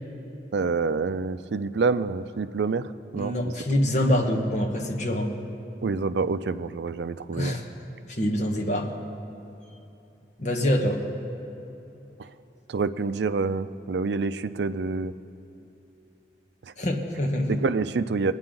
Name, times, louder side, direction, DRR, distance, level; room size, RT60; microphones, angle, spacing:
voice 1, 0.5-3.3 5.8-7.5 12.7-15.1 17.5-18.3, right 4 dB, 70° right, 12 dB, 0.4 m, -27 dB
voice 2, 3.2-5.3 7.3-7.6 8.1-8.9 10.4-11.0 16.8-17.6, left 1 dB, 45° left, 1 dB, 1.3 m, -25 dB
21.5 x 9.7 x 3.8 m, 3.0 s
head